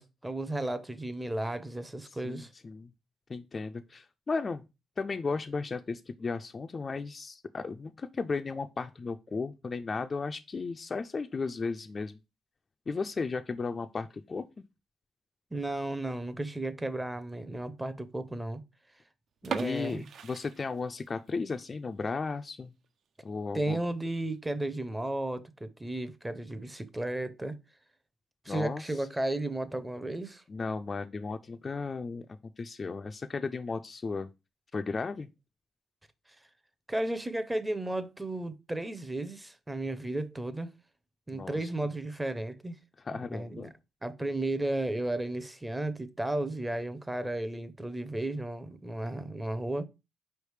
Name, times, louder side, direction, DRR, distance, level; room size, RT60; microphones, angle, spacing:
voice 1, 0.0-2.5 15.5-18.6 19.4-20.1 23.5-27.6 28.4-30.4 36.9-40.7 41.3-42.8 43.1-43.7 44.0-49.9, right 1 dB, 10° right, 0.5 m, -34 dB
voice 2, 2.2-2.9 3.3-4.6 5.0-12.2 12.9-14.6 19.6-22.7 23.2-23.8 28.5-28.9 30.5-34.3 34.7-35.3 41.3-41.7 43.0-43.7, left 4 dB, 35° left, 0.3 m, -35 dB
sound 1, 19.4-21.3 21.6-21.7 22.3-22.4 22.8-22.9 23.2-23.3 24.0-24.4, right 6 dB, 60° right, 0.4 m, -39 dB
4.8 x 3.2 x 3.2 m
cardioid pair, 90°, 0 cm